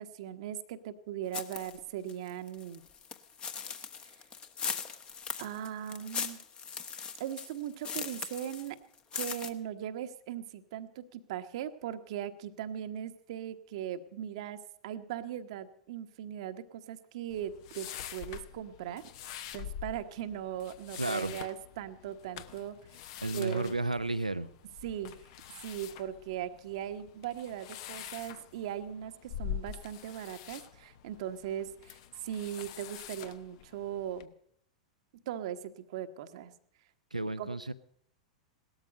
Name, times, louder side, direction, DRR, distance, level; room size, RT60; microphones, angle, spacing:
voice 1, 0.0-2.9 4.0-4.1 5.4-6.4 7.2-8.8 9.1-23.1 23.3-23.8 24.8-25.3 25.6-34.3 35.3-36.5 37.4-37.5, right 10 dB, 55° right, 9 dB, 1.1 m, -39 dB
sound 1, 1.3-1.8 2.1-8.7 9.0-9.5, left 6 dB, 25° left, 1.2 m, -39 dB
sound 2, 17.3-34.2, left 10 dB, 50° left, 0.9 m, -45 dB
voice 2, 21.0-21.3 23.2-24.5 37.1-37.7, right 2 dB, 90° right, 12 dB, 0.8 m, -32 dB
17.5 x 13.0 x 5.2 m, 0.67 s
figure-of-eight pair, 95°, 4 cm